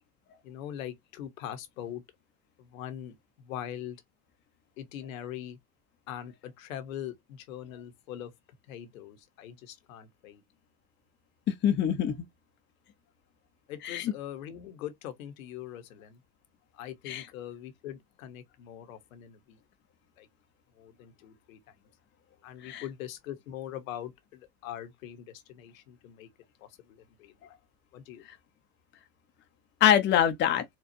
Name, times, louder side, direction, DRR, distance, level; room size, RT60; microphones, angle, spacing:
voice 1, 0.4-2.0 2.6-4.0 4.8-5.6 6.1-8.3 8.7-10.4 13.7-16.2 16.7-19.6 20.2-20.3 20.8-21.7 22.4-26.3 26.6-27.3 27.9-28.2, left 11 dB, 65° left, 1.0 m, -42 dB
voice 2, 11.6-12.1 13.8-14.1 17.1-17.3 22.6-22.9 29.8-30.6, left 10 dB, 25° left, 0.7 m, -24 dB
4.3 x 2.3 x 2.6 m
hypercardioid pair, 85°, 43 cm